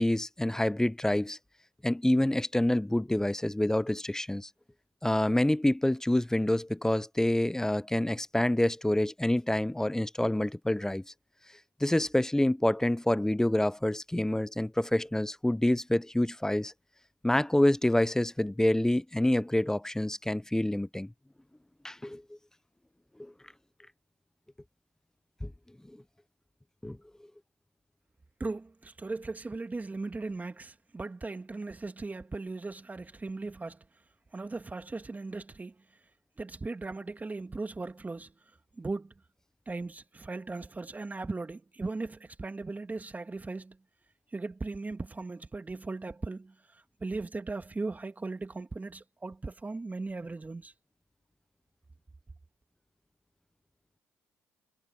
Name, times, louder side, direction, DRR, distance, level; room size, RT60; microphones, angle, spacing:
voice 1, 0.0-1.4 1.8-4.5 5.0-11.0 11.8-16.7 17.2-21.1 21.8-22.2 23.2-23.3 25.4-25.5 26.8-27.0, left 1 dB, 10° left, 0.8 m, -27 dB
voice 2, 28.4-33.8 34.3-35.8 36.4-38.3 38.8-39.1 39.7-43.8 44.3-50.7, right 3 dB, 25° right, 2.2 m, -38 dB
hypercardioid pair, 55°, 7 cm